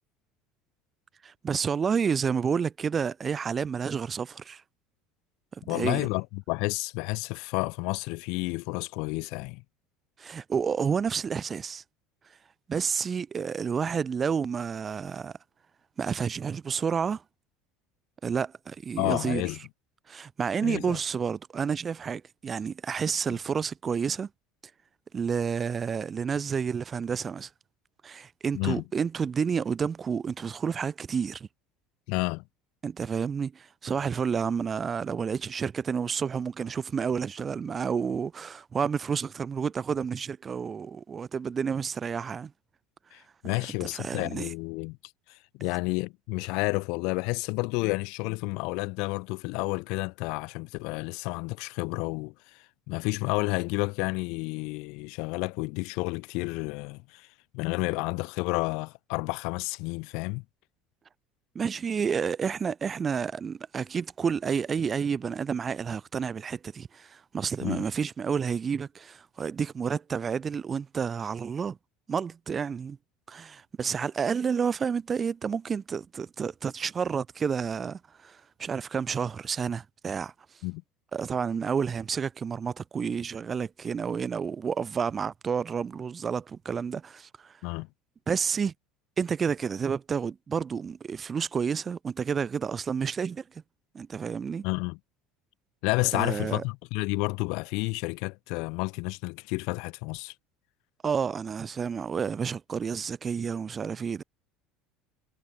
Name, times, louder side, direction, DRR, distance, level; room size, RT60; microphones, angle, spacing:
voice 1, 1.2-4.6 5.5-6.1 10.2-11.8 12.7-15.4 16.0-17.2 18.2-19.5 20.1-24.3 25.1-27.5 28.0-31.5 32.8-42.5 43.8-44.5 61.5-71.8 72.1-73.0 73.3-80.3 81.1-87.6 88.3-88.7 89.2-93.6 93.9-94.7 96.1-96.6 101.0-104.2, right 6 dB, 25° right, 5.8 m, -30 dB
voice 2, 5.7-9.6 19.0-19.6 20.6-21.0 28.5-28.8 32.1-32.4 43.1-45.0 45.3-52.6 52.9-57.3 57.5-60.4 67.6-67.8 80.6-80.8 87.6-87.9 94.6-95.0 95.8-100.3, left 28 dB, 70° left, 3.0 m, -30 dB
cardioid pair, 130°, 0 cm